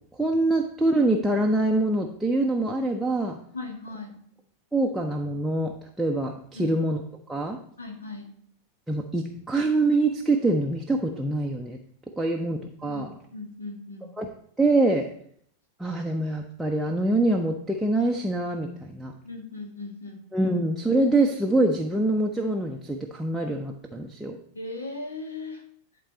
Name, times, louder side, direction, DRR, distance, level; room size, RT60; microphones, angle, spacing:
voice 1, 0.1-3.4 4.7-7.0 7.3-7.6 8.9-11.8 12.2-13.1 14.2-14.3 14.6-15.1 15.8-19.1 20.3-24.4, right 2 dB, 5° right, 0 dB, 0.7 m, -25 dB
voice 2, 3.5-4.1 6.5-6.7 7.8-8.3 12.8-13.0 13.3-14.1 19.2-20.2 24.5-25.6, left 3 dB, 75° left, 2 dB, 1.8 m, -37 dB
11.0 x 3.8 x 4.2 m, 0.63 s
figure-of-eight pair, 90°, 0 cm